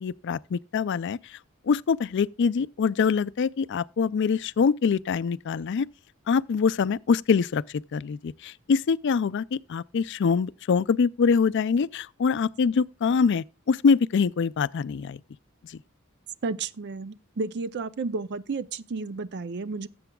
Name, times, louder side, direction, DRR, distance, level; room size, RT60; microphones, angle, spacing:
voice 1, 0.0-1.4 1.7-5.9 6.3-15.2 15.7-15.8, left 5 dB, 60° left, 0.4 m, -24 dB
voice 2, 16.4-19.9, right 4 dB, 55° right, 0.5 m, -32 dB
18.0 x 7.9 x 2.3 m
head